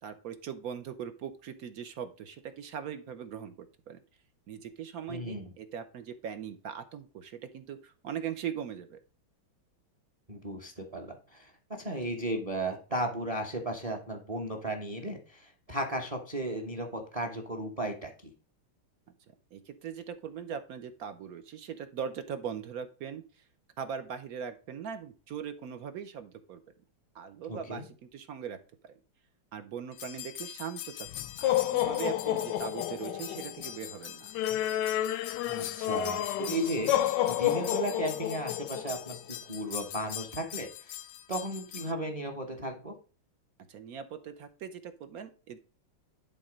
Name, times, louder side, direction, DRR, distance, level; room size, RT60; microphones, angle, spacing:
voice 1, 0.0-3.5 3.9-4.0 4.5-9.0 19.5-23.4 23.8-26.6 27.1-28.6 28.8-29.0 29.5-34.3 43.7-45.6, right 8 dB, 65° right, 9 dB, 0.9 m, -40 dB
voice 2, 5.1-5.5 10.3-18.3 27.5-27.8 34.5-34.6 35.5-40.9 41.3-43.0, right 1 dB, 25° right, 5 dB, 0.8 m, -35 dB
sound 1, 30.0-41.9, left 12 dB, 75° left, 1.0 m, -32 dB
11.0 x 3.7 x 5.1 m, 0.37 s
omnidirectional pair, 2.3 m